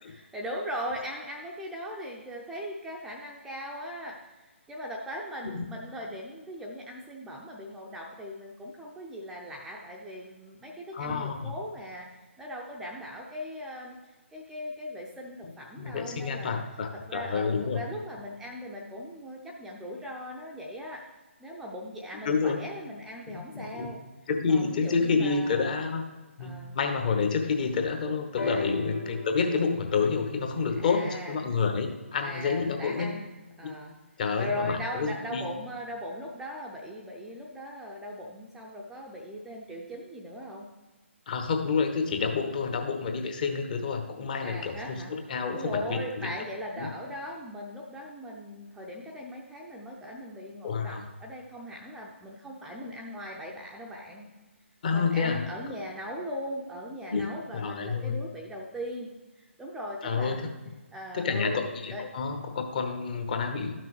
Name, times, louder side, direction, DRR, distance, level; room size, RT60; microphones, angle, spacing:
voice 1, 0.0-12.1 12.4-14.0 14.3-16.6 16.9-21.0 21.4-24.0 24.5-25.7 26.4-26.8 28.4-28.7 30.8-31.5 32.2-33.3 33.6-34.0 34.4-40.7 44.4-45.1 45.5-54.3 54.9-59.1 59.6-60.5 60.9-61.6 61.9-62.0, equal, 5° right, -2 dB, 0.5 m, -39 dB
voice 2, 10.9-11.5 15.8-17.8 22.2-22.6 23.3-23.9 24.3-26.0 26.4-33.1 34.2-35.5 41.3-46.3 46.8-46.9 50.6-51.1 54.8-55.4 57.1-57.3 57.5-58.2 60.0-60.5 61.1-63.7, left 5 dB, 40° left, 5 dB, 1.0 m, -29 dB
sound 1, 28.4-32.2 33.1-33.2, left 3 dB, 65° left, 1.4 m, -37 dB
12.0 x 6.0 x 3.1 m, 1.2 s
figure-of-eight pair, 140°, 7 cm